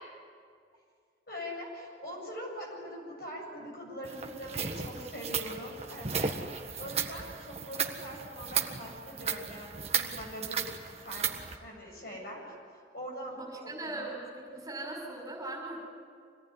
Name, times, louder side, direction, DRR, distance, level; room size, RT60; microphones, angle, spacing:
voice 1, 1.3-10.7 11.0-11.3 11.6-12.5 12.9-14.1, equal, 55° left, -1 dB, 7.7 m, -42 dB
sound 1, 4.0-11.6, right 6 dB, 35° right, 1.5 m, -35 dB
voice 2, 13.3-15.8, right 2 dB, 20° right, -2 dB, 5.7 m, -39 dB
26.5 x 18.5 x 9.8 m, 2.2 s
head